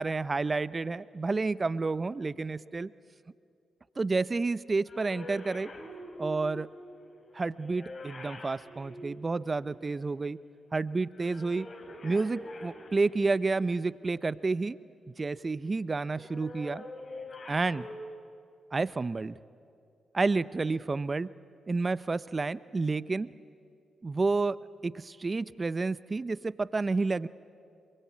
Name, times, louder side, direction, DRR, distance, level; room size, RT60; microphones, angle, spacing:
voice 1, 0.0-2.9 4.0-5.7 6.2-6.7 7.3-10.4 10.7-11.7 12.0-14.8 15.2-16.8 17.5-17.9 18.7-19.4 20.1-21.3 21.7-23.3 24.0-24.6 24.8-27.3, right 3 dB, 35° right, 17 dB, 0.7 m, -30 dB
sound 1, 4.8-9.9 11.1-13.7 16.1-17.9, left 1 dB, 50° left, 3.7 m, -45 dB
26.5 x 22.5 x 8.5 m, 2.3 s
supercardioid pair, 50°, 0 cm